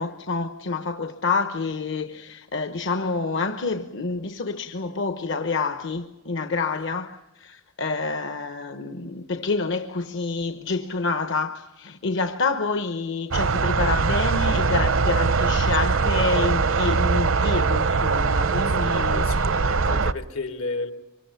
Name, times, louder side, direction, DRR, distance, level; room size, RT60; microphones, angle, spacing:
voice 1, 0.0-19.5, left 4 dB, 65° left, 1.0 m, -28 dB
sound 1, 13.3-20.1, right 4 dB, 75° right, 0.7 m, -22 dB
voice 2, 18.8-20.9, left 3 dB, 85° left, 2.5 m, -33 dB
25.5 x 25.0 x 5.7 m
head